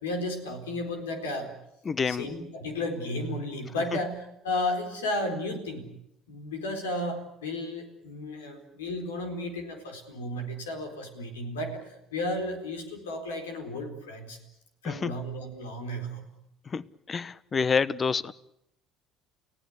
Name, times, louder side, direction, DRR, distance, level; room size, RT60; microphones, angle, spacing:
voice 1, 0.0-1.5 2.1-5.9 6.3-14.4 14.8-16.3, left 1 dB, 85° left, 4.2 m, -33 dB
voice 2, 1.8-2.3 14.8-15.2 16.7-18.3, left 5 dB, 35° left, 1.0 m, -28 dB
30.0 x 17.0 x 9.7 m
hypercardioid pair, 60°, 0 cm